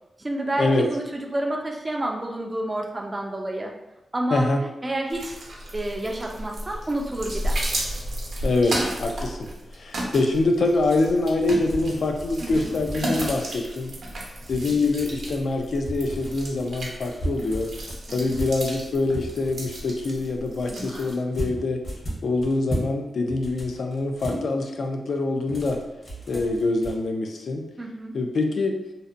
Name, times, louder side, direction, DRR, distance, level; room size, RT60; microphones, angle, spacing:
voice 1, 0.2-3.7 4.1-4.5 4.8-5.4 5.7-7.6 12.4-12.7 18.1-18.3 26.3-26.6 27.8-28.1, right 1 dB, 20° right, 1 dB, 0.3 m, -29 dB
voice 2, 4.3-4.6 8.4-9.5 9.8-13.9 14.5-17.7 18.1-21.8 22.2-25.8 26.3-27.7 28.1-28.8, left 2 dB, 65° left, 4 dB, 0.3 m, -25 dB
sound 1, 5.1-21.2, right 1 dB, 70° right, 0.6 m, -33 dB
sound 2, 11.4-13.6 14.4-15.4 15.8-16.7 17.1-19.8 21.3-23.0 23.3-24.4 25.4-26.9, right 1 dB, 50° left, 0.8 m, -35 dB
2.6 x 2.1 x 2.4 m, 0.97 s
wide cardioid pair, 110°, 0 cm